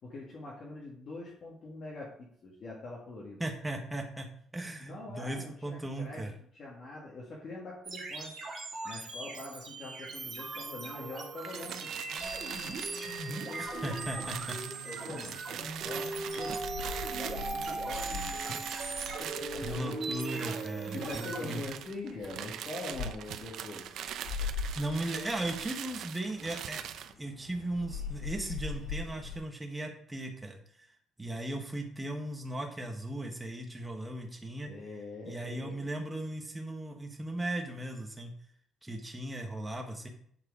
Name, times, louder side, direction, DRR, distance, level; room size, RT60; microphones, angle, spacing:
voice 1, 0.0-3.4 4.8-8.4 8.8-12.7 13.3-14.4 14.8-16.6 17.1-18.3 18.7-18.8 19.2-19.9 20.9-23.9 34.6-35.8, left 2 dB, 40° left, -4 dB, 1.7 m, -44 dB
voice 2, 3.4-6.3 13.6-14.6 15.1-15.2 19.6-21.6 24.7-26.8 27.2-30.6 31.2-34.7 35.3-38.3 38.8-40.1, right 1 dB, 10° right, 2 dB, 1.2 m, -37 dB
sound 1, 7.8-21.6, right 3 dB, 40° right, 2.7 m, -39 dB
sound 2, 11.4-27.1, right 10 dB, 60° right, 0.6 m, -42 dB
sound 3, 12.2-13.2 13.7-14.7 15.1-20.7 21.0-21.1 21.3-29.4, left 5 dB, 75° left, 3.0 m, -43 dB
9.6 x 4.8 x 4.9 m, 0.63 s
cardioid pair, 170°, 0 cm